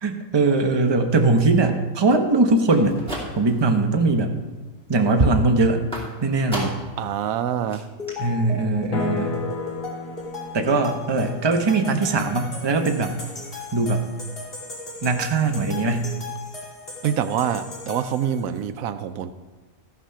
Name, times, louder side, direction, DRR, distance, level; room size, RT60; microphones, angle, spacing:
voice 1, 0.0-3.0 3.4-4.3 4.9-5.8 6.2-6.7 8.2-9.5 10.5-13.2 13.7-14.1 15.0-16.1, right 3 dB, 25° right, 5 dB, 0.7 m, -20 dB
sound 1, 2.6-3.7 4.1-4.6 5.9-7.0 7.4-7.5 7.7-7.8 8.1-8.2, right 1 dB, 5° left, 2.5 m, -34 dB
voice 2, 7.0-7.8 17.0-19.3, right 9 dB, 80° right, 11 dB, 1.0 m, -25 dB
sound 2, 8.0-18.6, left 3 dB, 40° left, 2.4 m, -37 dB
sound 3, 8.9-13.0, left 4 dB, 85° left, 1.4 m, -34 dB
13.5 x 6.0 x 5.6 m, 1.2 s
omnidirectional pair, 1.4 m